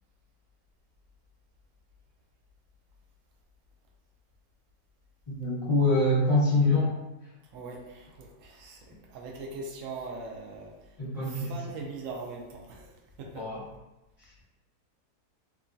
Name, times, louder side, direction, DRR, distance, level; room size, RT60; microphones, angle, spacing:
voice 1, 5.3-6.9 11.0-11.5 13.3-13.6, left 2 dB, 20° left, -12 dB, 1.2 m, -25 dB
voice 2, 7.5-11.0 11.2-13.5, right 3 dB, 80° right, -1 dB, 0.7 m, -41 dB
3.0 x 2.3 x 2.5 m, 1.0 s
omnidirectional pair, 1.9 m